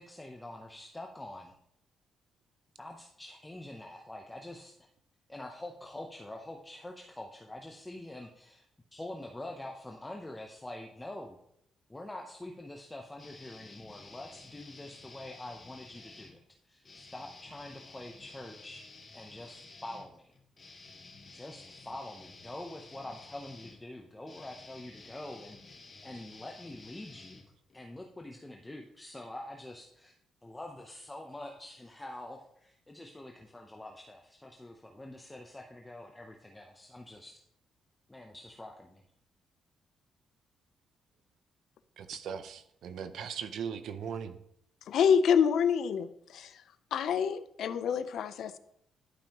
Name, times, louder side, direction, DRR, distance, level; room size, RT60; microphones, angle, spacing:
voice 1, 0.0-1.5 2.8-4.7 5.3-11.4 11.9-16.4 16.6-18.8 19.1-20.3 21.3-25.8 26.0-27.4 27.7-30.1 30.4-37.4 38.1-39.0, left 1 dB, 10° left, 1 dB, 0.7 m, -45 dB
sound 1, 13.2-16.3 16.8-28.0, left 3 dB, 30° left, 1.3 m, -53 dB
voice 2, 42.0-44.4, right 7 dB, 75° right, 11 dB, 0.6 m, -39 dB
voice 3, 44.9-46.5 46.9-48.6, left 7 dB, 75° left, 13 dB, 0.5 m, -27 dB
11.5 x 5.4 x 2.9 m, 0.73 s
cardioid pair, 115°, 0 cm